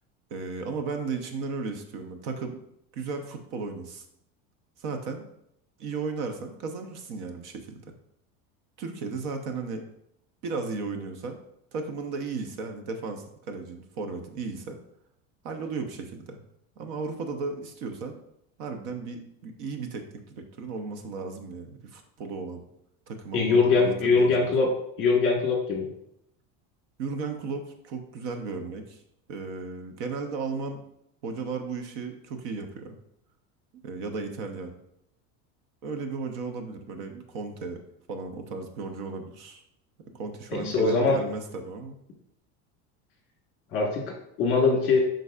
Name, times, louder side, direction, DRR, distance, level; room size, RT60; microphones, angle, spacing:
voice 1, 0.3-2.6 2.9-4.0 4.8-5.2 5.8-7.9 8.8-9.8 10.4-11.4 11.7-14.8 15.4-16.4 16.8-18.2 18.6-22.6 23.1-24.5 27.0-29.0 29.3-30.8 31.2-33.0 33.8-34.7 35.8-37.8 38.1-39.6 40.1-42.0, right 4 dB, 65° right, 6 dB, 0.9 m, -35 dB
voice 2, 23.3-24.7 25.0-25.9 40.5-41.2 43.7-45.0, left 4 dB, 35° left, -1 dB, 1.5 m, -22 dB
11.0 x 4.0 x 2.4 m, 0.75 s
cardioid pair, 180°, 37 cm